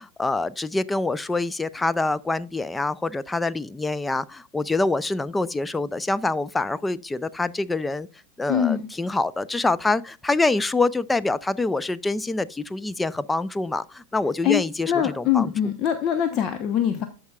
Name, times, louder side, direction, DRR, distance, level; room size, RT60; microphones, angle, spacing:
voice 1, 0.0-8.1 8.4-15.5, left 2 dB, 10° left, 0.5 m, -25 dB
voice 2, 8.5-8.9 14.4-17.1, left 9 dB, 40° left, 0.9 m, -23 dB
13.5 x 4.8 x 2.3 m
hypercardioid pair, 95°, 0 cm